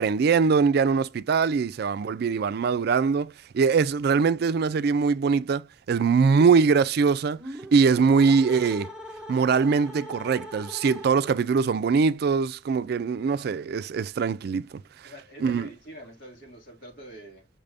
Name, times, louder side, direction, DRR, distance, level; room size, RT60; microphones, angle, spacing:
voice 1, 0.0-7.4 7.7-8.9 9.3-14.7 15.0-15.1 15.4-15.7, right 5 dB, 60° right, 0.3 m, -22 dB
sound 1, 7.3-11.5, equal, 5° right, 0.9 m, -41 dB
voice 2, 15.0-17.5, right 1 dB, 85° left, 2.2 m, -45 dB
5.9 x 2.6 x 3.3 m
head